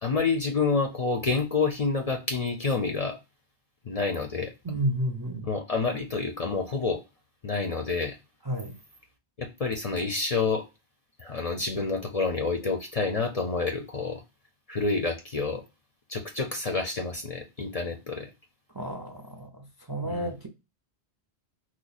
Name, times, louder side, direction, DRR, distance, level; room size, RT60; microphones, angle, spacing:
voice 1, 0.0-3.2 3.8-4.5 5.4-7.0 7.4-8.2 9.4-10.7 11.2-14.2 14.7-15.6 16.1-18.3 20.0-20.3, left 4 dB, 45° left, 0.5 m, -28 dB
voice 2, 4.6-5.5 8.5-8.8 18.7-20.5, right 1 dB, 30° right, 0.4 m, -31 dB
3.0 x 2.1 x 3.9 m
omnidirectional pair, 1.1 m